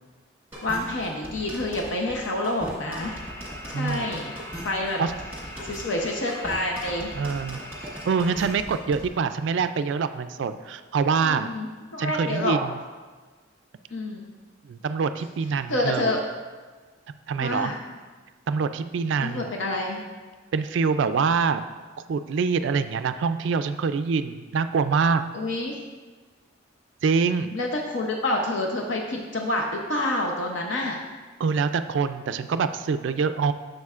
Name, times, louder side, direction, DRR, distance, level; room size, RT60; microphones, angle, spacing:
sound 1, 0.5-9.1, equal, 10° right, 1.6 m, -39 dB
voice 1, 0.6-3.2 3.7-4.3 4.6-5.0 5.6-7.1 11.2-12.6 13.9-14.2 15.7-16.2 17.4-17.8 19.2-20.0 25.3-25.8 27.5-31.0, left 1 dB, 60° left, 0 dB, 0.7 m, -28 dB
sound 2, 3.0-8.6, equal, 20° left, 1.3 m, -42 dB
voice 2, 3.7-4.1 5.0-5.1 7.1-7.6 8.1-11.5 12.0-12.8 14.7-16.2 17.3-17.7 18.5-19.5 20.5-21.6 22.1-25.2 27.0-27.6 31.4-33.5, right 5 dB, 60° right, 10 dB, 0.3 m, -25 dB
10.5 x 6.5 x 2.4 m, 1.4 s
head